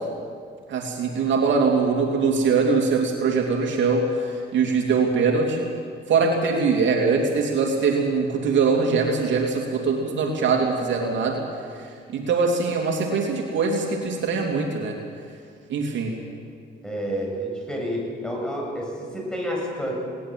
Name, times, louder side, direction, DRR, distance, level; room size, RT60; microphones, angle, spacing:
voice 1, 0.7-5.7 6.1-11.4 12.1-15.0 15.7-16.1, right 4 dB, 70° right, 1 dB, 3.0 m, -22 dB
voice 2, 16.8-19.9, equal, 5° left, -2 dB, 7.8 m, -29 dB
20.0 x 18.5 x 7.8 m, 2.2 s
cardioid pair, 90°, 20 cm